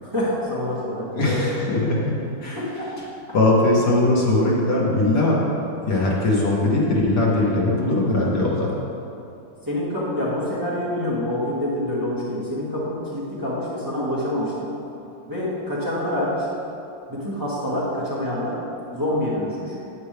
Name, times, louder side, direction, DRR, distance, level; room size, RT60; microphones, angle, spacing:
voice 1, 0.0-1.4 2.6-2.9 9.7-14.7 15.3-16.5 17.1-18.6 18.9-19.7, left 1 dB, 10° right, -8 dB, 1.7 m, -26 dB
voice 2, 1.2-2.2 2.4-2.7 3.3-5.4 5.8-8.7, left 2 dB, 65° left, -4 dB, 2.0 m, -20 dB
9.6 x 9.3 x 3.4 m, 2.7 s
omnidirectional pair, 2.0 m